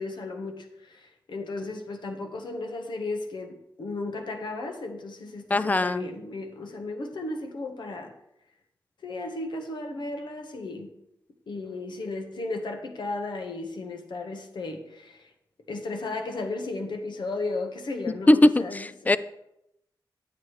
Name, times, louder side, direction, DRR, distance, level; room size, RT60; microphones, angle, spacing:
voice 1, 0.0-8.1 9.0-10.9 11.5-15.2 15.7-18.9, left 2 dB, 80° left, 4 dB, 1.1 m, -35 dB
voice 2, 5.5-6.1 18.3-19.2, left 1 dB, 20° left, 15 dB, 0.4 m, -20 dB
9.4 x 8.1 x 3.1 m, 0.82 s
cardioid pair, 75°, 8 cm